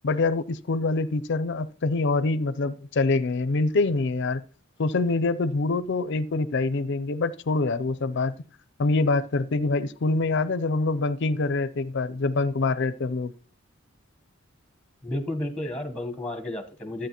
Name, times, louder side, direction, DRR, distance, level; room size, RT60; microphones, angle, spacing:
voice 1, 0.0-4.4 4.8-8.4 8.8-13.3, left 3 dB, 55° left, 0.5 m, -25 dB
voice 2, 15.0-17.1, left 1 dB, 5° left, 0.9 m, -32 dB
12.5 x 8.5 x 2.9 m
head